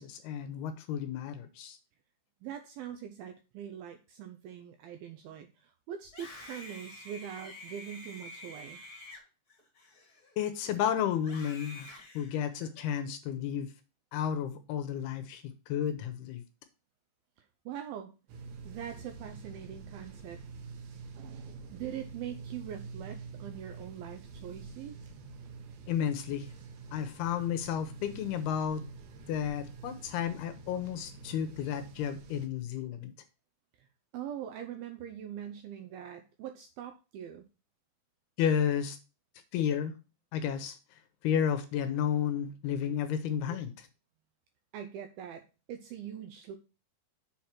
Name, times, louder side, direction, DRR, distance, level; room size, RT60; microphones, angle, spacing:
voice 1, 0.0-1.8 10.4-11.9 12.2-13.7 14.1-16.4 25.9-26.5 26.9-28.8 29.3-33.1 38.4-39.0 39.5-39.9 40.3-40.8 41.2-43.9, left 8 dB, 80° left, 10 dB, 2.5 m, -32 dB
voice 2, 2.4-8.8 17.4-18.1 18.6-20.4 21.7-25.0 33.8-33.9 34.1-37.5 44.7-46.6, right 9 dB, 85° right, 6 dB, 2.1 m, -43 dB
Screaming, 6.0-10.5 11.2-12.9, left 1 dB, 25° left, 2.2 m, -49 dB
sound 1, 18.3-32.5, right 4 dB, 70° right, 2.5 m, -47 dB
7.3 x 4.3 x 5.8 m, 0.31 s
omnidirectional pair, 4.9 m